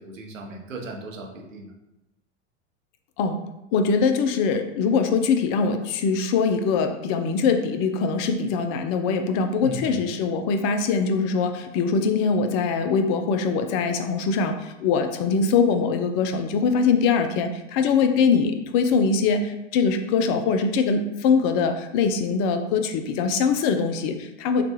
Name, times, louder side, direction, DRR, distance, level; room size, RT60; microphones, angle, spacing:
voice 1, 0.0-1.7 9.6-10.0, right 2 dB, 90° right, 0 dB, 1.0 m, -36 dB
voice 2, 3.7-24.6, left 5 dB, 35° left, 7 dB, 0.4 m, -22 dB
5.8 x 2.3 x 3.0 m, 0.93 s
hypercardioid pair, 100°, 38 cm